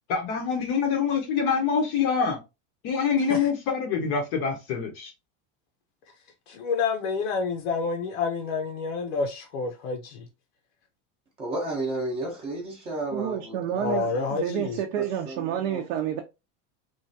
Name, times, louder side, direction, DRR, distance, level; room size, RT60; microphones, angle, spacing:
voice 1, 0.1-2.4 2.8-5.1, left 6 dB, 35° left, 0.5 m, -25 dB
voice 2, 6.5-10.2 13.8-14.8, left 4 dB, 90° left, 0.7 m, -28 dB
voice 3, 11.4-14.2 15.0-15.8, right 2 dB, 15° right, 0.5 m, -33 dB
voice 4, 13.1-16.2, right 10 dB, 70° right, 0.5 m, -29 dB
3.0 x 2.3 x 2.6 m
cardioid pair, 180°, 36 cm